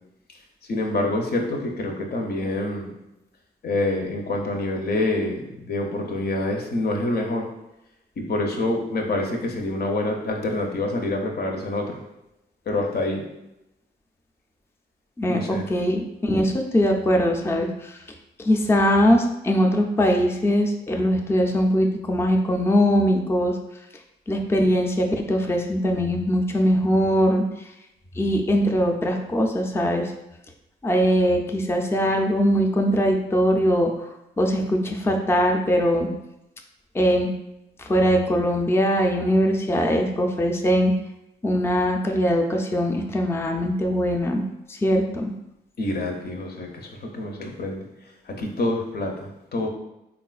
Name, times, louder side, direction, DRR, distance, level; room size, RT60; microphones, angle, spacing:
voice 1, 0.7-2.9 3.6-7.5 8.2-12.0 12.7-13.2 15.3-15.7 45.8-47.8 48.3-49.7, left 2 dB, 50° left, 2 dB, 0.6 m, -26 dB
voice 2, 15.7-18.0 18.4-23.6 24.3-27.4 28.2-30.1 30.8-33.9 34.4-36.1 36.9-37.3 37.8-40.9 41.4-44.4 44.7-45.3, equal, 10° left, 2 dB, 0.4 m, -21 dB
3.4 x 2.4 x 2.3 m, 0.90 s
supercardioid pair, 50°, 21 cm